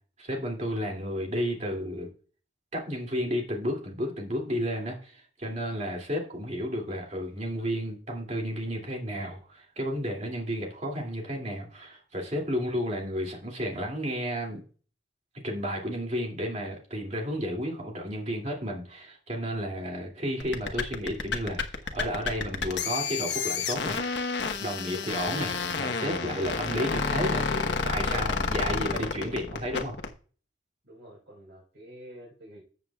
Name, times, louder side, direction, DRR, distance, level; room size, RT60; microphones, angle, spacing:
voice 1, 0.2-2.1 2.7-14.6 15.3-24.0 24.6-29.9, equal, 35° right, 0 dB, 2.5 m, -32 dB
sound 1, 20.4-30.1, left 4 dB, 70° left, 1.1 m, -30 dB
voice 2, 30.8-32.6, equal, 90° right, -5 dB, 4.5 m, -48 dB
13.5 x 7.3 x 2.3 m, 0.40 s
head